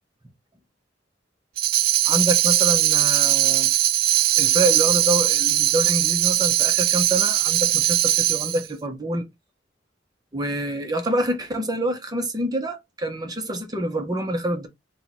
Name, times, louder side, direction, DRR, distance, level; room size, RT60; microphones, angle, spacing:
Tambourine, 1.6-8.6, right 14 dB, 55° right, 0.4 m, -20 dB
voice 1, 2.1-3.7 4.4-9.3 10.3-14.7, right 1 dB, 20° right, 0.8 m, -26 dB
4.5 x 2.3 x 4.1 m
head